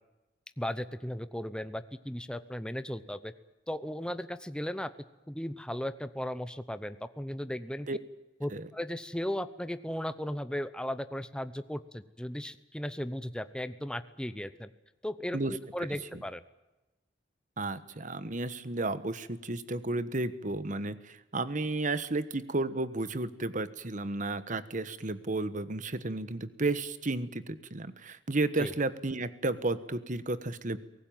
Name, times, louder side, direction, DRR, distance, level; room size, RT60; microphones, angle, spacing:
voice 1, 0.6-3.3 3.7-4.9 5.3-7.9 8.4-14.7 15.0-16.4 28.6-28.7, equal, 5° left, 12 dB, 0.8 m, -36 dB
voice 2, 17.6-30.8, right 2 dB, 45° right, 13 dB, 1.3 m, -33 dB
23.0 x 18.5 x 9.2 m, 1.0 s
head